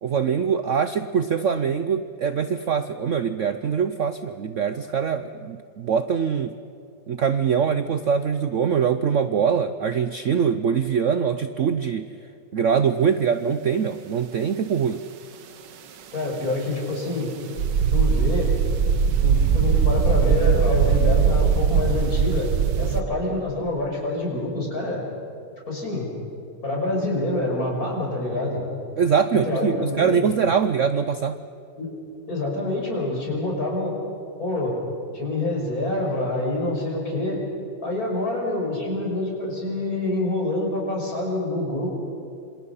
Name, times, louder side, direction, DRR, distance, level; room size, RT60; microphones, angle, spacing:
voice 1, 0.0-6.6 7.1-12.1 12.5-15.0 29.0-31.4, right 7 dB, 60° right, 10 dB, 0.9 m, -23 dB
voice 2, 16.1-17.3 17.9-18.6 19.2-25.0 25.7-26.1 26.6-28.6 29.4-30.3 31.8-32.0 32.3-34.0 34.4-34.8 35.1-37.4 37.8-41.9, left 2 dB, 50° left, -2 dB, 6.5 m, -26 dB
sound 1, 17.6-23.0, right 6 dB, 75° right, 1.7 m, -20 dB
27.5 x 27.0 x 5.7 m, 2.6 s
omnidirectional pair, 2.0 m